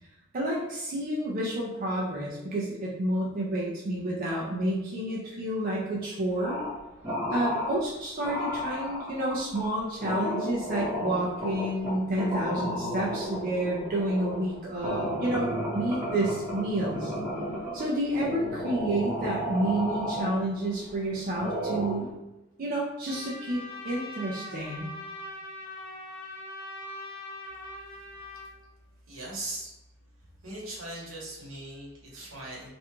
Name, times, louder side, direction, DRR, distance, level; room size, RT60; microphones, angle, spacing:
voice 1, 0.3-6.6 7.3-17.1 17.7-22.1 22.6-24.9 31.5-31.6, right 1 dB, 45° right, -5 dB, 0.4 m, -30 dB
sound 1, 6.4-6.8 7.0-7.8 8.2-20.9 21.3-22.1, equal, 25° right, 1.2 m, -33 dB
Trumpet, 23.1-28.5, left 1 dB, 50° left, 0.4 m, -41 dB
voice 2, 29.1-29.7 30.4-32.7, right 2 dB, 75° right, -4 dB, 1.0 m, -39 dB
2.5 x 2.2 x 2.9 m, 0.98 s
head